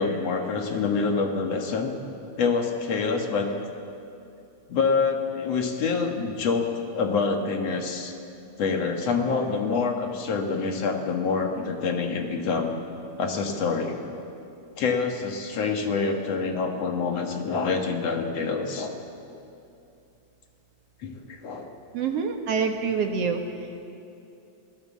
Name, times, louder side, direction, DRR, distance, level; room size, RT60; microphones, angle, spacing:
voice 1, 0.0-1.9 2.4-3.5 4.7-8.1 8.6-12.7 13.2-14.0 14.8-18.9 21.0-21.7, left 4 dB, 60° left, 3 dB, 2.6 m, -26 dB
voice 2, 21.9-23.4, right 5 dB, 60° right, 4 dB, 2.1 m, -26 dB
26.0 x 17.0 x 7.5 m, 2.6 s
omnidirectional pair, 3.4 m